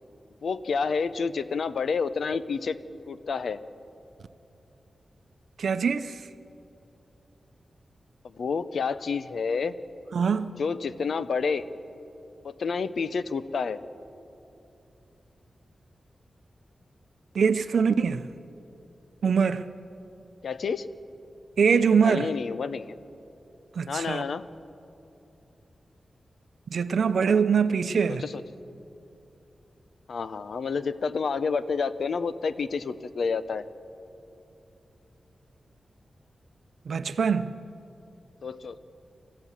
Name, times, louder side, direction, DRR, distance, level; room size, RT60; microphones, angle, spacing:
voice 1, 0.4-2.8 3.1-3.6 8.2-9.8 10.6-11.6 12.4-13.8 20.4-20.9 22.0-22.9 23.9-24.5 28.1-28.4 30.1-33.6 38.4-38.8, left 5 dB, 70° left, 0.7 m, -29 dB
voice 2, 5.6-6.2 10.1-10.5 17.3-18.3 19.2-19.7 21.6-22.3 23.7-24.2 26.7-28.2 36.9-37.6, right 6 dB, 75° right, 0.7 m, -23 dB
27.5 x 14.5 x 7.3 m
wide cardioid pair, 180°, 0 cm